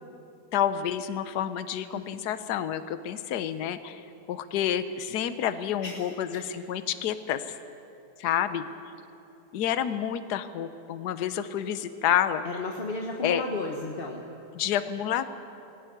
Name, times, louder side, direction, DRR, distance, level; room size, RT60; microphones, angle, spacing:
voice 1, 0.5-4.0 4.3-7.6 8.2-8.6 9.5-12.4 13.2-13.4 14.5-15.3, left 10 dB, 65° left, 11 dB, 1.3 m, -29 dB
voice 2, 12.4-14.2, left 2 dB, 35° left, 0 dB, 1.2 m, -34 dB
18.0 x 17.0 x 9.4 m, 2.7 s
omnidirectional pair, 2.0 m